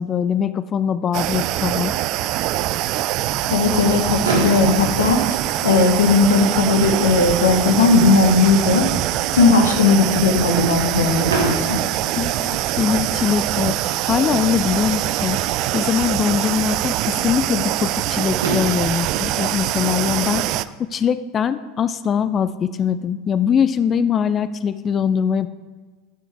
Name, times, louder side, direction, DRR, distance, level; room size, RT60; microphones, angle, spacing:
voice 1, 0.0-1.9 12.2-15.4 15.7-25.5, left 7 dB, 35° left, 13 dB, 0.4 m, -22 dB
sound 1, 1.1-20.7, right 14 dB, 55° right, 0.3 m, -23 dB
voice 2, 3.5-5.2 5.6-8.9 9.3-11.8, left 4 dB, 80° left, 4 dB, 1.2 m, -17 dB
Fireworks, 4.2-6.3 7.1-7.2 7.4-7.6 7.9-8.0 11.3-13.1 14.8-14.9 17.9-18.0 18.4-20.7, right 3 dB, 80° right, 1.7 m, -28 dB
9.3 x 6.9 x 3.5 m, 1.4 s
hypercardioid pair, 80°, 0 cm